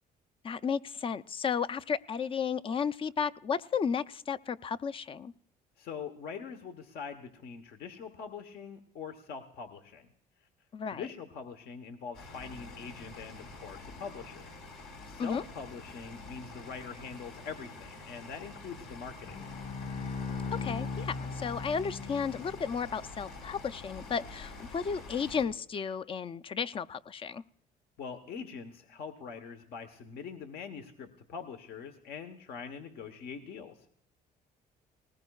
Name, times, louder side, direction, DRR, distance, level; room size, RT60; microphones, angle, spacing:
voice 1, 0.4-5.3 10.7-11.0 15.2-15.4 20.5-27.4, left 6 dB, 30° left, 0.4 m, -33 dB
voice 2, 5.8-10.1 10.8-19.4 28.0-33.9, left 6 dB, 65° left, 1.1 m, -43 dB
sound 1, 12.1-25.4, left 2 dB, 85° left, 3.9 m, -47 dB
Bowed string instrument, 19.2-22.8, left 4 dB, 50° left, 4.1 m, -38 dB
19.0 x 19.0 x 2.3 m
cardioid pair, 110°, 17 cm